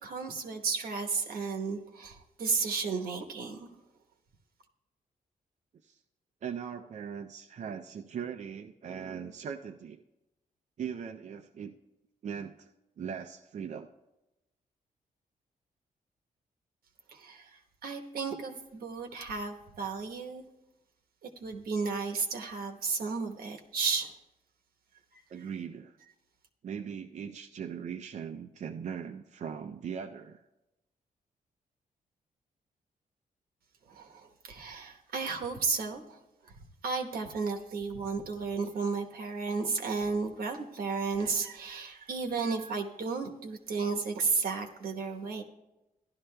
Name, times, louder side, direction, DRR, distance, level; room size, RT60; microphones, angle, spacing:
voice 1, 0.0-3.7 17.1-20.5 21.2-24.1 25.1-25.2 33.9-36.2 36.4-36.5 36.8-45.4, right 4 dB, 85° right, 3 dB, 1.1 m, -33 dB
voice 2, 6.4-10.0 10.8-11.7 12.2-12.7 13.0-13.9 25.3-26.0 26.6-30.4, right 7 dB, 55° right, 5 dB, 0.5 m, -39 dB
16.0 x 11.5 x 2.2 m, 0.98 s
cardioid pair, 105°, 15 cm